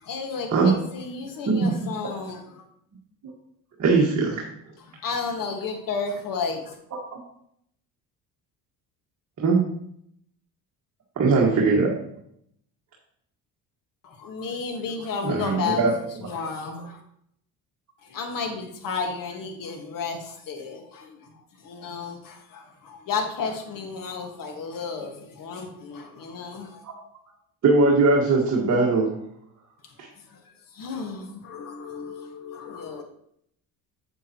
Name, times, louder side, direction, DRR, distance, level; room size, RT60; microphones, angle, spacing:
voice 1, 0.0-2.6 5.0-6.7 14.0-17.0 18.1-21.3 21.6-26.8 30.5-31.6 32.6-33.0, left 5 dB, 60° left, 1.7 m, -32 dB
voice 2, 1.5-1.9 3.8-4.4 7.1-7.2 9.4-9.6 11.2-11.9 15.2-15.9 26.8-26.9 27.6-29.1, right 3 dB, 45° right, 1.7 m, -20 dB
voice 3, 31.4-33.0, left 6 dB, 45° left, 0.8 m, -39 dB
7.8 x 7.2 x 3.0 m
cardioid pair, 105°, 38 cm